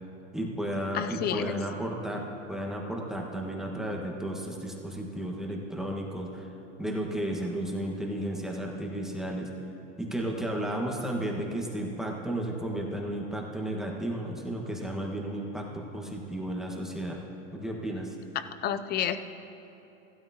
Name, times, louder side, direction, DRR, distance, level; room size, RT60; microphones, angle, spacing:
voice 1, 0.3-6.5 6.8-9.5 10.0-17.2 17.5-18.1, right 1 dB, ahead, -1 dB, 1.4 m, -33 dB
voice 2, 0.9-1.6 18.6-19.2, left 9 dB, 25° left, 11 dB, 0.5 m, -29 dB
15.5 x 13.0 x 2.9 m, 3.0 s
hypercardioid pair, 110°, 38 cm